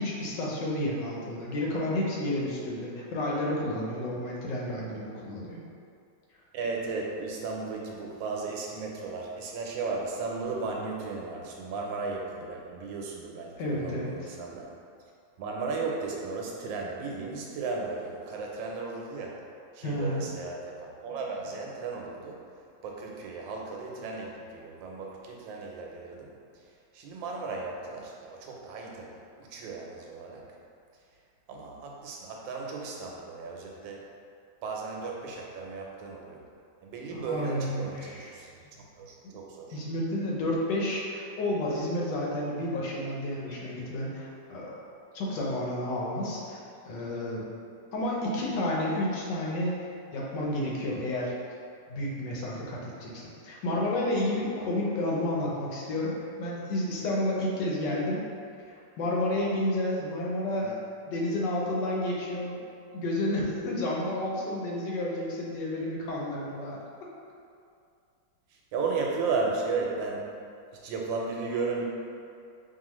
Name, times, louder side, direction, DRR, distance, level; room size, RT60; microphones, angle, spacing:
voice 1, 0.0-5.6 13.6-14.3 19.8-20.3 37.1-38.3 39.7-44.8 45.1-47.4 47.9-49.7 50.1-51.3 51.9-56.1 56.4-58.2 58.7-60.8 61.1-62.6 62.9-66.8, left 1 dB, 75° left, -3 dB, 1.4 m, -31 dB
voice 2, 6.5-14.8 15.4-19.5 19.7-22.5 22.8-26.4 26.9-30.5 31.5-34.1 34.6-36.5 36.8-39.8 68.5-70.3 70.7-71.8, right 4 dB, 85° right, -1 dB, 1.4 m, -35 dB
4.8 x 2.7 x 3.0 m, 2.4 s
omnidirectional pair, 2.0 m